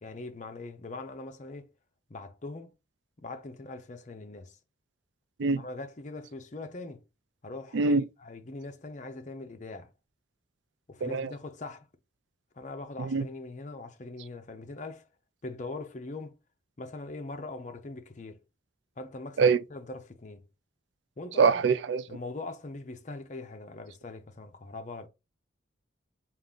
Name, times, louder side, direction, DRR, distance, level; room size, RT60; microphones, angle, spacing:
voice 1, 0.0-1.7 2.1-2.7 3.2-4.6 5.6-7.0 7.4-9.9 10.9-11.9 12.6-15.1 15.4-16.4 16.8-18.4 19.0-20.5 21.2-21.5 22.1-25.1, left 2 dB, 40° left, 0.6 m, -41 dB
voice 2, 7.7-8.0 11.0-11.3 13.0-13.2 19.4-19.6 21.4-22.0, right 5 dB, 65° right, 0.4 m, -24 dB
3.7 x 2.5 x 3.6 m
head